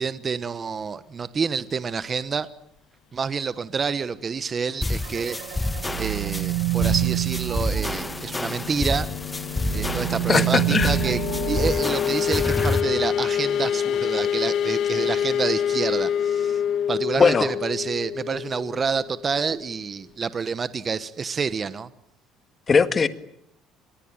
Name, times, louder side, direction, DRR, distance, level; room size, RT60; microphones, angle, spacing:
voice 1, 0.0-2.5 3.1-5.4 6.0-9.1 9.7-11.2 11.5-16.6 16.9-21.9, right 5 dB, 30° right, 1.2 m, -28 dB
sound 1, 4.8-12.8, left 2 dB, 10° left, 1.8 m, -29 dB
sound 2, 5.0-8.9 9.3-12.7, right 18 dB, 75° right, 1.3 m, -28 dB
sound 3, 7.2-19.7, left 9 dB, 50° left, 1.2 m, -27 dB
voice 2, 10.3-11.2 17.2-17.5 22.7-23.1, left 5 dB, 30° left, 1.8 m, -20 dB
26.0 x 21.5 x 9.0 m
cardioid pair, 130°, 0 cm